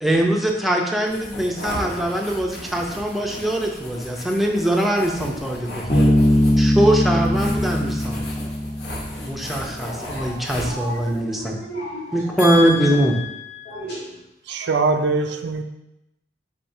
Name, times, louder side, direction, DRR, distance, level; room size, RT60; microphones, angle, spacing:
voice 1, 0.0-6.2 6.6-8.2 9.2-11.6 12.1-13.2, right 1 dB, ahead, 0 dB, 0.5 m, -22 dB
sound 1, 1.1-11.2, left 1 dB, 65° left, 0.8 m, -36 dB
voice 2, 5.5-5.9 10.0-14.2, left 3 dB, 85° left, -8 dB, 1.6 m, -32 dB
Bass guitar, 5.9-9.3, left 1 dB, 40° left, 1.0 m, -19 dB
voice 3, 14.5-15.6, right 3 dB, 70° right, 5 dB, 0.4 m, -22 dB
4.5 x 3.8 x 2.7 m, 0.88 s
head